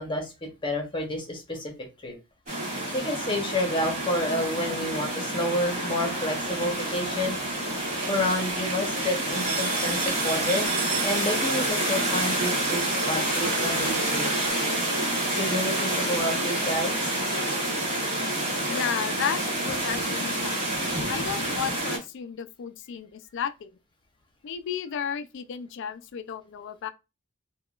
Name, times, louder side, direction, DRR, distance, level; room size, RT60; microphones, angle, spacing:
voice 1, 0.0-1.7 2.0-2.1 2.9-7.4 8.1-10.7 11.0-14.5 15.3-17.0, left 1 dB, 25° left, 0.9 m, -29 dB
sound 1, 2.5-22.0, right 1 dB, 40° right, 1.4 m, -28 dB
sound 2, 6.7-7.5 7.8-14.5, right 7 dB, 80° right, 0.5 m, -38 dB
voice 2, 18.7-20.6 21.1-23.7 24.4-26.9, left 8 dB, 60° left, 0.3 m, -33 dB
3.6 x 2.3 x 2.3 m
head